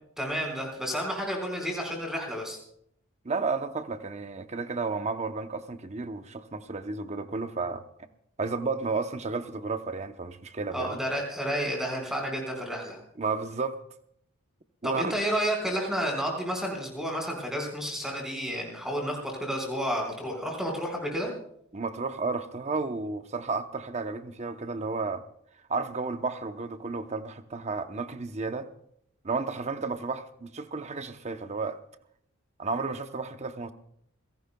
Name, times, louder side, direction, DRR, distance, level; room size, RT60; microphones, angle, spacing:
voice 1, 0.2-2.6 10.7-13.0 14.8-21.3, equal, ahead, 4.7 m, -31 dB
voice 2, 3.2-7.8 8.4-11.0 13.2-13.8 14.8-15.1 21.7-25.2 25.7-28.7 29.2-31.8 32.6-33.7, right 4 dB, 30° right, 0.8 m, -32 dB
28.0 x 17.0 x 2.3 m
head